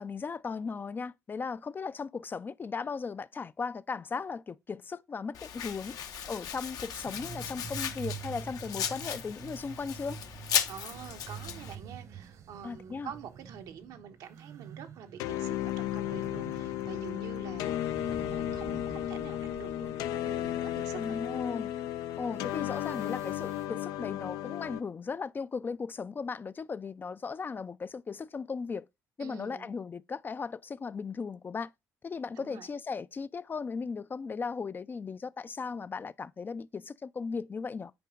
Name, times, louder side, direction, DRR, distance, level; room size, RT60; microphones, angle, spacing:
voice 1, 0.0-6.0 6.3-10.2 12.6-13.1 20.9-21.7 22.2-28.9 29.2-31.7 32.0-37.9, left 5 dB, 30° left, 0.4 m, -37 dB
Domestic sounds home sounds, 5.3-11.7, left 8 dB, 70° left, 0.9 m, -36 dB
sound 1, 5.7-23.7, right 6 dB, 55° right, 1.1 m, -48 dB
voice 2, 10.7-21.2 29.2-29.7 32.4-32.7, right 8 dB, 80° right, 1.1 m, -47 dB
sound 2, 15.2-24.8, left 12 dB, 90° left, 0.5 m, -34 dB
8.5 x 4.9 x 3.7 m
cardioid pair, 85°, 6 cm